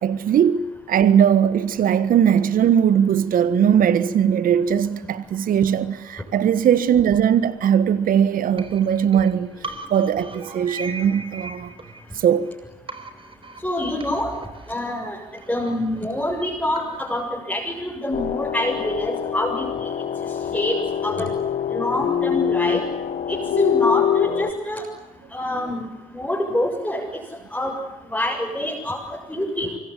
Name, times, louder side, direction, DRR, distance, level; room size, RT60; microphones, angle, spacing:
voice 1, 0.0-9.5 9.9-11.7 12.1-12.5, right 8 dB, 55° right, 1.5 m, -19 dB
sound 1, 8.6-12.5 12.9-17.3, right 3 dB, 30° right, 4.2 m, -39 dB
voice 2, 13.6-14.3 14.7-15.2 15.5-19.9 20.5-21.3 21.7-22.8 23.3-24.8 25.3-27.0 27.5-27.8 28.1-29.7, left 1 dB, 10° left, 7.0 m, -26 dB
sound 2, 18.1-24.5, left 9 dB, 50° left, 1.9 m, -24 dB
24.5 x 24.0 x 9.9 m
hypercardioid pair, 50°, 17 cm